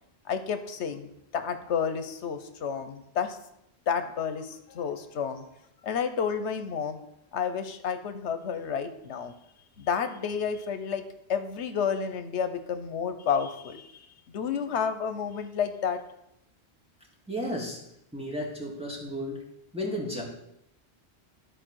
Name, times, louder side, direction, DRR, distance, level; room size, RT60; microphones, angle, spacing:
voice 1, 0.3-3.4 3.9-5.4 5.8-7.0 7.3-9.3 9.8-11.0 11.3-14.1 14.3-16.0, left 7 dB, 80° left, 9 dB, 1.1 m, -30 dB
voice 2, 17.3-17.8 18.1-19.4 19.7-20.2, equal, 5° right, -3 dB, 2.2 m, -33 dB
12.5 x 4.7 x 6.2 m, 0.80 s
omnidirectional pair, 1.1 m